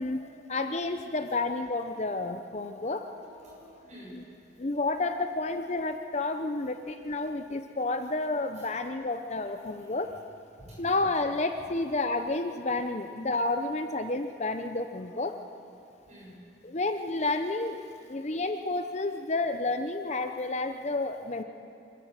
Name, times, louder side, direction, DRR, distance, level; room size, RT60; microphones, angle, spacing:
voice 1, 0.0-3.1 4.1-4.2 4.6-10.1 10.8-15.4 16.6-21.4, left 2 dB, 35° left, 7 dB, 0.7 m, -30 dB
voice 2, 2.8-4.1 8.6-8.7 10.6-11.0 16.1-16.4, equal, 35° right, -4 dB, 7.2 m, -50 dB
26.0 x 14.0 x 8.1 m, 2.6 s
head